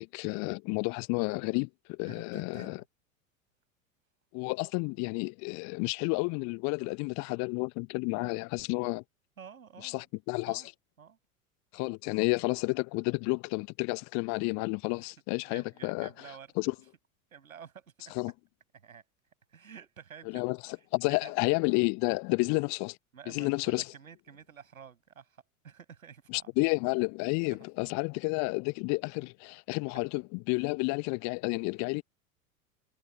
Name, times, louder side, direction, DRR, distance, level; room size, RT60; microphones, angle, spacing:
voice 1, 0.0-2.8 4.3-9.0 9.8-10.6 11.7-16.1 16.6-16.7 18.2-18.3 20.3-20.6 20.9-23.0 23.3-23.8 26.3-32.0, left 31 dB, 40° left, 1.2 m, -31 dB
voice 2, 2.0-2.9 8.2-8.4 9.4-10.1 10.4-10.7 11.0-11.2 15.0-15.1 15.4-16.9 17.3-18.1 18.7-19.0 19.5-20.4 20.7-21.4 23.1-26.7 27.5-27.6 30.5-30.7, right 7 dB, 75° right, 7.4 m, -51 dB
figure-of-eight pair, 80°, 42 cm